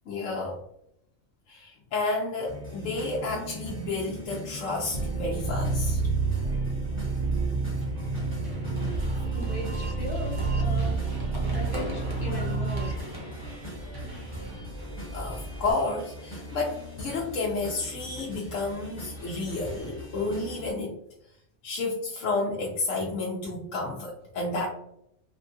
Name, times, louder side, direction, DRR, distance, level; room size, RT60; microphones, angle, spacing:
voice 1, 0.1-0.6 1.5-6.0 15.1-21.0 21.6-24.7, left 3 dB, 80° left, -3 dB, 1.0 m, -31 dB
sound 1, 2.5-20.7, left 1 dB, 10° left, 0.9 m, -41 dB
sound 2, 4.9-12.9, right 4 dB, 70° right, 0.8 m, -29 dB
Run, 8.0-15.7, equal, 25° right, 0.6 m, -40 dB
voice 2, 9.3-11.0 11.5-13.0, left 2 dB, 50° left, -2 dB, 1.0 m, -38 dB
3.4 x 2.3 x 2.6 m, 0.75 s
omnidirectional pair, 1.3 m